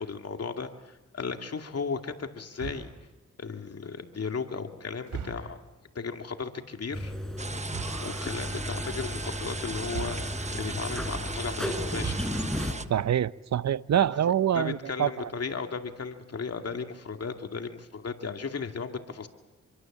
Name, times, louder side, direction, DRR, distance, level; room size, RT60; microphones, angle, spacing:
voice 1, 0.0-2.9 3.4-5.6 5.9-7.1 8.0-12.3 14.2-19.3, left 5 dB, 55° left, 2.4 m, -35 dB
sound 1, 2.5-3.1 5.1-5.7 7.6-8.2 9.9-10.7 11.9-12.6, right 6 dB, 85° right, 4.0 m, -39 dB
sound 2, 6.9-12.7, equal, ahead, 4.8 m, -34 dB
sound 3, 7.4-12.9, right 3 dB, 25° right, 1.3 m, -38 dB
voice 2, 12.9-15.3, right 10 dB, 65° right, 0.8 m, -25 dB
27.0 x 23.0 x 7.4 m
cardioid pair, 65°, 29 cm